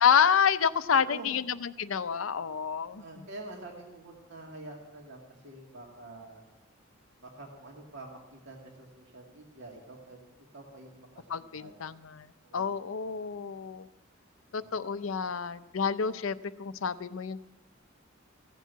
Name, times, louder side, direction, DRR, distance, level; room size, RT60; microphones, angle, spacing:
voice 1, 0.0-3.0 11.3-12.3 12.5-13.9 14.5-17.4, left 7 dB, 75° left, 13 dB, 0.6 m, -28 dB
voice 2, 0.9-1.4 2.9-6.4 7.2-10.2 10.5-11.8 12.4-12.8 14.5-14.7, right 2 dB, 60° right, 0 dB, 2.2 m, -47 dB
15.5 x 7.4 x 8.1 m, 0.99 s
head